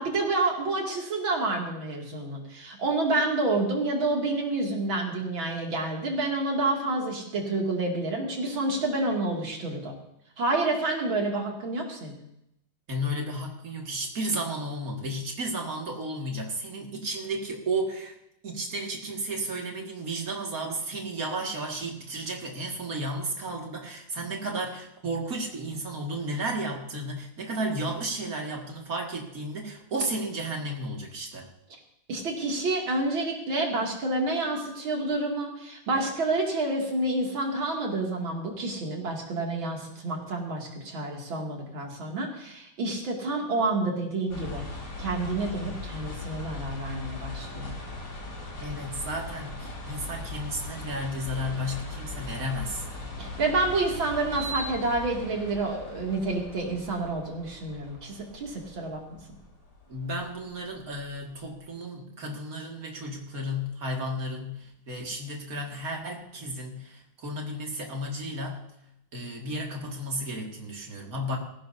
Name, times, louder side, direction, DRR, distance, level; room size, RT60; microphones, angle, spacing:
voice 1, 0.0-10.0 10.4-12.2 32.1-44.6 45.0-47.8 53.2-59.2, right 2 dB, 85° right, 0 dB, 3.3 m, -29 dB
voice 2, 12.9-18.1 18.4-31.5 48.6-52.8 59.9-68.6 69.1-71.4, right 1 dB, 45° right, 1 dB, 2.5 m, -33 dB
sound 1, 44.3-61.5, left 2 dB, 65° left, 4.1 m, -39 dB
18.5 x 15.5 x 2.7 m, 0.80 s
omnidirectional pair, 2.1 m